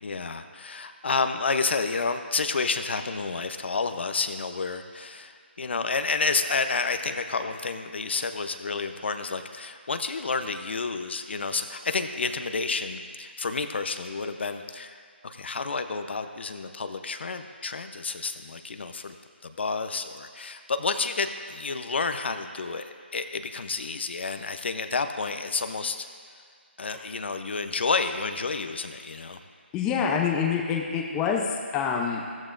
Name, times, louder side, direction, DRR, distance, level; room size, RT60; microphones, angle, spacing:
voice 1, 0.0-15.0 15.2-19.1 19.4-26.4 26.8-29.4, left 4 dB, 65° left, 8 dB, 0.8 m, -30 dB
voice 2, 29.7-31.4 31.7-32.2, left 7 dB, 10° left, 0 dB, 0.6 m, -26 dB
16.0 x 13.5 x 2.6 m, 2.1 s
hypercardioid pair, 165°, 6 cm